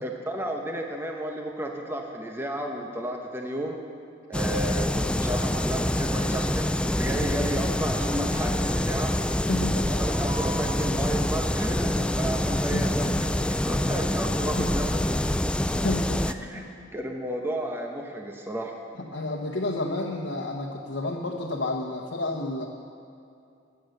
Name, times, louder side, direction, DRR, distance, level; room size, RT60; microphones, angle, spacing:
voice 1, 0.0-3.8 4.3-9.1 10.0-15.0 16.4-16.6 16.9-18.7, right 1 dB, 10° right, 2 dB, 1.0 m, -32 dB
sound 1, 4.3-16.3, left 1 dB, 5° left, 0.3 m, -26 dB
sound 2, 5.6-10.5, right 1 dB, 30° right, 1.9 m, -44 dB
voice 2, 9.5-9.9 12.7-13.2 14.6-14.7 15.8-16.3 16.5-16.9 19.0-22.7, left 2 dB, 85° left, -1 dB, 1.1 m, -31 dB
sound 3, 10.7-16.5, left 2 dB, 30° left, 0.7 m, -46 dB
15.5 x 9.6 x 6.7 m, 2.5 s
head